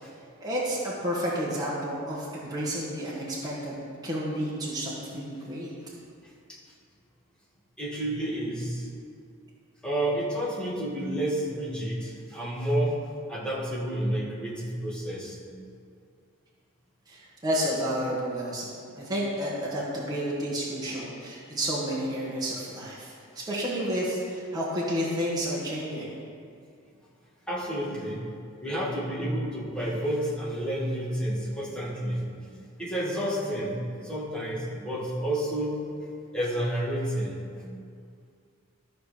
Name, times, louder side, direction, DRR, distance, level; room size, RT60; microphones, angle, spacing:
voice 1, 0.4-3.8 4.0-5.7 17.1-18.7 18.9-26.1, equal, 20° right, -7 dB, 1.6 m, -30 dB
voice 2, 7.8-8.9 9.8-13.0 13.3-15.4 20.9-21.0 27.5-28.3 28.6-32.3 32.8-33.8 34.0-35.8 36.3-37.5, right 1 dB, 5° left, -7 dB, 2.2 m, -30 dB
14.0 x 5.1 x 5.1 m, 2.3 s
head